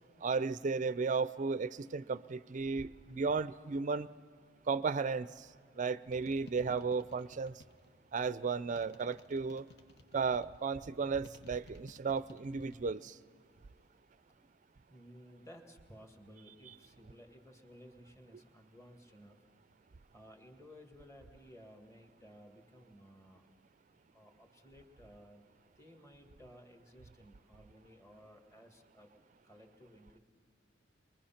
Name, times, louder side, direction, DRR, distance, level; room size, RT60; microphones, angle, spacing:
voice 1, 0.2-4.1 4.7-5.5 5.8-7.6 8.1-9.7 10.1-13.2, right 5 dB, 45° right, 16 dB, 0.4 m, -34 dB
sound 1, 6.1-8.0 8.8-10.6 11.2-12.9 13.2-13.8, left 3 dB, 65° left, 1.1 m, -56 dB
voice 2, 14.9-19.4 20.1-23.4 24.1-25.5 25.8-29.1 29.4-30.2, equal, 15° left, 4 dB, 1.7 m, -57 dB
23.0 x 21.5 x 5.8 m, 2.1 s
head